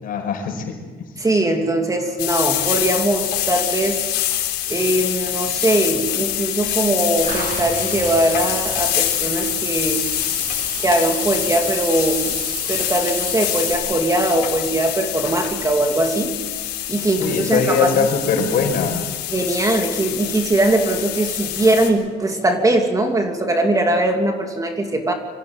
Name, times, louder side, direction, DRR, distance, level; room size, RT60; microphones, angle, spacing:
voice 1, 0.0-0.7 17.1-19.0, left 5 dB, 55° left, 3 dB, 5.6 m, -21 dB
voice 2, 1.2-4.0 4.7-10.0 10.8-12.3 12.7-16.4 16.9-18.1 19.3-25.1, right 1 dB, 20° right, 3 dB, 3.0 m, -20 dB
sound 1, 2.2-21.9, left 13 dB, 85° left, 4.3 m, -25 dB
Water / Bathtub (filling or washing), 7.2-13.7, right 5 dB, 55° right, 6.9 m, -32 dB
25.5 x 16.0 x 9.1 m, 1.5 s
cardioid pair, 110°, 17 cm